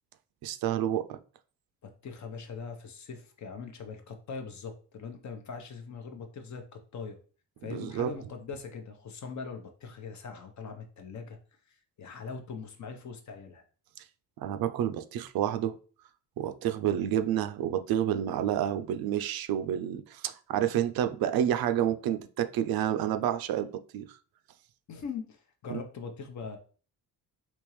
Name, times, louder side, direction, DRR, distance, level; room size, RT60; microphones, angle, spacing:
voice 1, 0.4-1.2 7.7-8.1 14.4-15.8 16.4-23.7 23.9-24.0 25.7-25.8, right 10 dB, 70° right, 0.5 m, -29 dB
voice 2, 1.8-7.2 7.6-11.4 12.0-13.6 24.9-26.6, left 5 dB, 50° left, 0.8 m, -41 dB
3.5 x 3.0 x 3.0 m
cardioid pair, 90°, 38 cm